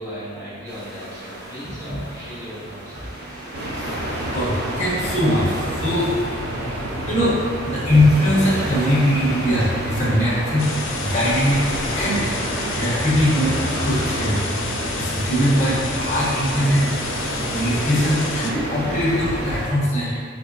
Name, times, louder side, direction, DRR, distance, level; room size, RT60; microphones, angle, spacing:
voice 1, 0.0-3.2 12.6-13.1 20.0-20.2, equal, 15° right, -10 dB, 1.1 m, -37 dB
sound 1, 0.6-19.7, right 1 dB, 55° right, 1.1 m, -35 dB
voice 2, 1.6-2.0 3.1-9.6 10.0-10.7 11.0-11.6 11.9-14.4 14.9-20.1, equal, 35° left, -8 dB, 1.3 m, -22 dB
sound 2, 3.5-19.7, right 1 dB, 85° right, 0.6 m, -29 dB
sound 3, 10.6-18.5, left 5 dB, 80° left, 0.4 m, -32 dB
4.2 x 3.2 x 2.6 m, 2.2 s
head